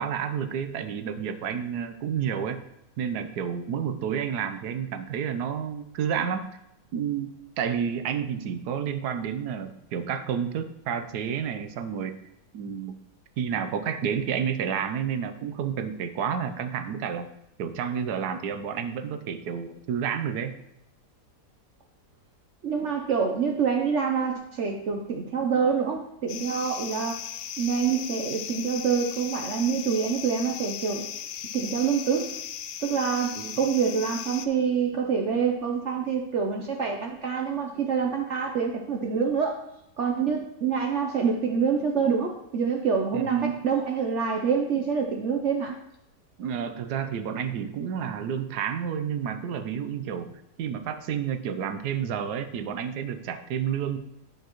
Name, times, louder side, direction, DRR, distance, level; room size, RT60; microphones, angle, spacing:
voice 1, 0.0-2.6 3.0-6.4 6.9-7.3 7.6-12.1 12.5-12.9 13.4-17.3 17.6-20.5 33.4-33.5 43.1-43.7 46.4-54.0, right 8 dB, 75° right, 10 dB, 1.2 m, -30 dB
voice 2, 22.6-27.2 27.6-31.1 31.5-32.3 32.8-39.6 40.0-45.8, right 6 dB, 60° right, 2 dB, 0.8 m, -26 dB
sound 1, 26.3-34.5, left 9 dB, 80° left, 1.2 m, -37 dB
9.2 x 6.9 x 3.0 m, 0.82 s
omnidirectional pair, 1.7 m